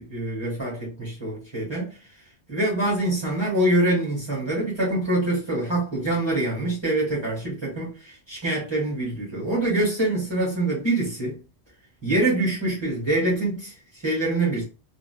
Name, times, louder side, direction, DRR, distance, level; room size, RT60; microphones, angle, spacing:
voice 1, 0.0-2.0 2.5-11.4 12.0-14.6, right 2 dB, 25° right, 1.6 m, -25 dB
3.6 x 2.5 x 2.3 m
omnidirectional pair, 1.1 m